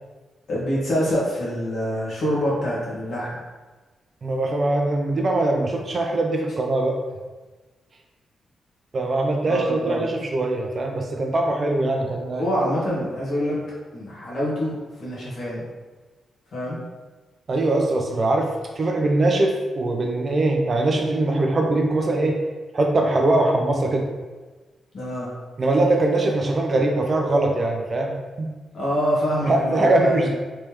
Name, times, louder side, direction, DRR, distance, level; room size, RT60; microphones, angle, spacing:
voice 1, 0.5-3.4 9.5-10.1 12.3-13.6 13.9-15.7 16.5-16.8 24.9-25.3 28.7-30.3, equal, 50° left, -6 dB, 1.2 m, -25 dB
voice 2, 4.2-7.0 8.9-12.4 17.5-18.5 18.8-22.4 22.7-24.1 25.6-28.5 29.5-30.3, right 2 dB, 35° right, 2 dB, 0.4 m, -22 dB
3.4 x 3.1 x 3.0 m, 1.3 s
wide cardioid pair, 175°, 0 cm